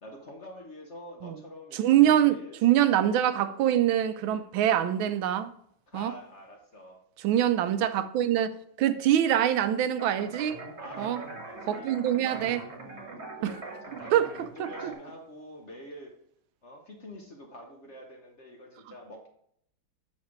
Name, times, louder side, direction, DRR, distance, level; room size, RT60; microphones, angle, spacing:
voice 1, 0.0-2.6 3.0-3.2 5.9-7.0 7.3-7.6 10.7-16.1 16.6-19.3, equal, 45° left, 1.0 m, -47 dB
voice 2, 1.7-2.4 2.6-5.5 5.9-6.1 7.2-10.6 11.0-11.2 11.7-12.6 13.4-13.5 14.1-14.3 14.6-14.7, right 11 dB, 85° right, 1.4 m, -24 dB
sound 1, 10.0-15.0, right 3 dB, 40° right, 1.4 m, -42 dB
7.2 x 6.5 x 3.1 m
omnidirectional pair, 2.1 m